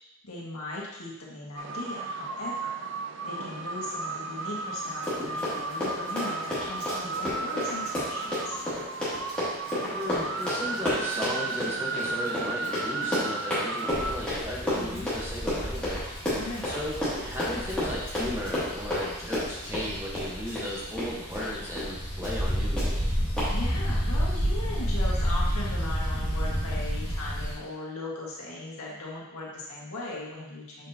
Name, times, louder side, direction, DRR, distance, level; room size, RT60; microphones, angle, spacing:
voice 1, 0.2-2.8 3.2-8.6 14.7-15.0 16.4-16.7 23.5-30.9, left 2 dB, 80° left, -4 dB, 1.8 m, -38 dB
sound 1, 1.6-14.2, right 3 dB, 55° right, 0.5 m, -34 dB
Run, 4.9-21.5 21.8-21.9 22.2-22.5 22.8-22.9 23.4-23.5, left 1 dB, 5° left, 2.4 m, -31 dB
voice 2, 9.9-16.1 16.6-23.0, left 1 dB, 10° right, -5 dB, 1.2 m, -36 dB
sound 2, 13.9-27.5, equal, 30° left, 2.5 m, -31 dB
7.2 x 5.8 x 2.9 m, 0.92 s
head